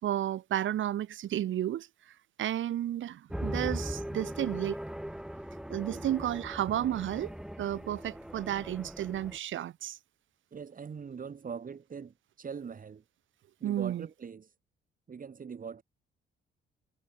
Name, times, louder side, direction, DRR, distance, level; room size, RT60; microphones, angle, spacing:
voice 1, 0.0-4.8 5.7-7.3 7.6-10.0 13.6-14.1, right 12 dB, 75° right, 6.4 m, -32 dB
sound 1, 3.3-9.4, equal, 5° right, 3.4 m, -39 dB
voice 2, 10.5-13.0 13.6-14.5 15.1-15.8, right 6 dB, 45° right, 7.8 m, -42 dB
cardioid pair, 90°, 20 cm